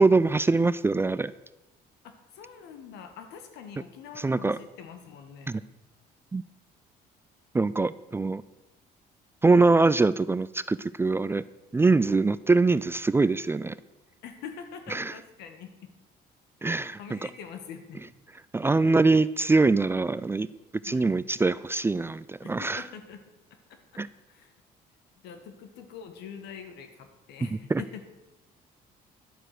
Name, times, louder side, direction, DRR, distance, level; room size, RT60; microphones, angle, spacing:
voice 1, 0.0-1.3 4.2-4.6 5.5-5.6 6.3-6.4 7.5-8.4 9.4-11.4 11.7-13.7 14.9-15.1 16.6-17.2 18.5-20.5 20.8-22.8 24.0-24.1 27.7-27.8, right 3 dB, 15° right, 16 dB, 0.3 m, -23 dB
voice 2, 2.0-5.5 14.2-15.9 16.8-18.0 20.8-21.1 22.4-23.2 23.7-24.0 24.3-24.5 25.2-28.1, left 7 dB, 85° left, 7 dB, 1.7 m, -44 dB
11.0 x 8.0 x 6.0 m, 1.0 s
cardioid pair, 110°, 17 cm